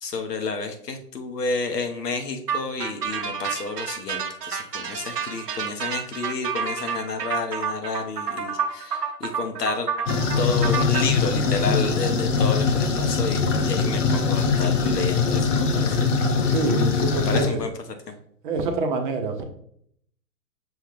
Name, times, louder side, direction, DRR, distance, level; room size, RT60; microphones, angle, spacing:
voice 1, 0.0-16.0 17.3-17.7 18.1-18.2, left 4 dB, 80° left, 6 dB, 1.0 m, -30 dB
sound 1, 2.5-11.0, right 6 dB, 80° right, 0.8 m, -29 dB
sound 2, 10.1-17.5, left 4 dB, 50° left, 0.8 m, -22 dB
voice 2, 16.4-17.6 18.4-19.4, right 4 dB, 35° right, 6 dB, 0.6 m, -26 dB
6.1 x 2.4 x 3.3 m, 0.67 s
figure-of-eight pair, 125°, 47 cm